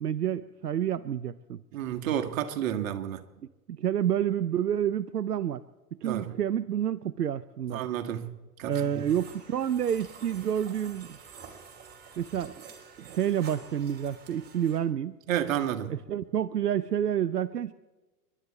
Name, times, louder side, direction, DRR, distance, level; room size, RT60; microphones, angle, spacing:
voice 1, 0.0-1.6 3.7-5.6 6.0-7.8 8.7-11.2 12.2-12.5 13.0-15.2 15.9-17.7, right 10 dB, 85° right, 0.7 m, -29 dB
voice 2, 1.7-3.2 6.0-6.3 7.7-8.3 8.6-9.1 15.3-15.9, right 10 dB, 55° right, 1.7 m, -31 dB
sound 1, 8.7-14.8, right 6 dB, 20° right, 3.5 m, -49 dB
30.0 x 11.5 x 4.3 m
figure-of-eight pair, 100°, 47 cm